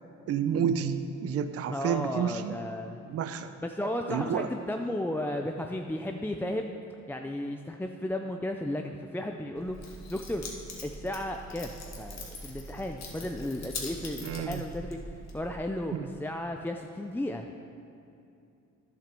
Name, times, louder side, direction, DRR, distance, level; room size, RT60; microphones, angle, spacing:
voice 1, 0.3-2.6 3.1-3.5 4.1-4.5 14.2-14.7 15.9-16.1, right 7 dB, 50° right, 10 dB, 0.6 m, -30 dB
voice 2, 1.7-3.0 3.6-6.7 7.1-10.5 10.8-15.0 15.3-17.5, left 1 dB, 5° left, 3 dB, 0.4 m, -34 dB
Keys jangling, 9.6-15.6, left 1 dB, 60° left, 1.7 m, -42 dB
10.5 x 7.6 x 5.3 m, 2.6 s
cardioid pair, 90°, 30 cm